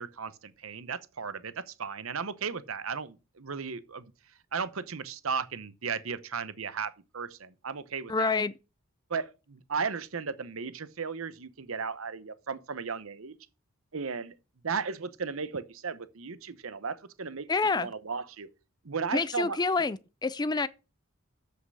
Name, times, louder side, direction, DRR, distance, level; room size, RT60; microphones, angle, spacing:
voice 1, 0.0-4.0 4.5-8.3 9.1-13.3 13.9-14.3 14.6-17.5 17.7-18.5 18.8-19.6, right 5 dB, 70° right, 0.9 m, -35 dB
voice 2, 8.1-8.5 17.5-17.9 19.1-20.7, left 4 dB, 20° left, 0.4 m, -27 dB
7.7 x 6.7 x 6.1 m
head